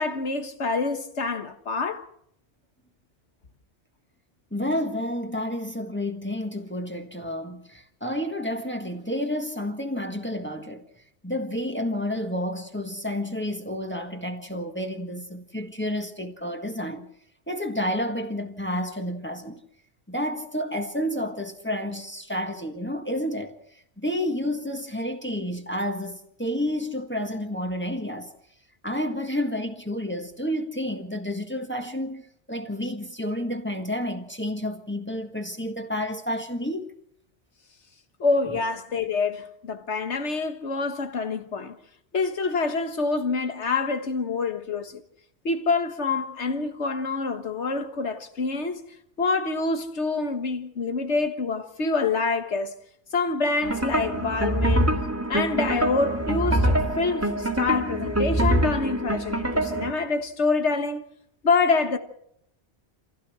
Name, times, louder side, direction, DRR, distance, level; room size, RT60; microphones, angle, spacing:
voice 1, 0.0-2.1 38.2-41.8 42.1-45.0 45.5-48.8 49.2-52.7 53.1-54.9 55.3-61.0 61.4-62.0, left 4 dB, 85° left, 1.8 m, -26 dB
voice 2, 4.5-10.8 11.2-17.1 17.5-19.6 20.1-23.6 24.0-28.3 28.8-32.2 32.5-36.9, left 1 dB, 10° left, 1.6 m, -30 dB
sound 1, 53.6-59.9, right 1 dB, 15° right, 2.1 m, -25 dB
27.0 x 15.5 x 6.3 m
omnidirectional pair, 1.1 m